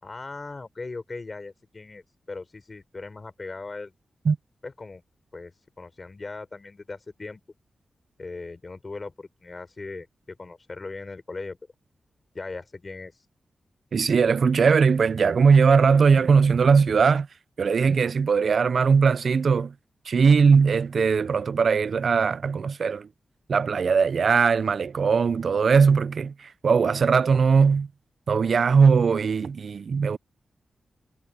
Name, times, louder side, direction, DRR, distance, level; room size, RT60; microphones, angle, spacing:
voice 1, 0.0-3.9 4.6-5.0 5.3-7.4 8.2-11.6 12.3-13.1, left 3 dB, 35° left, 4.9 m, -39 dB
voice 2, 13.9-17.3 17.6-19.7 20.1-23.1 23.5-26.3 26.6-27.9 28.3-30.2, right 5 dB, 65° right, 0.4 m, -20 dB
wide cardioid pair, 105°, 0 cm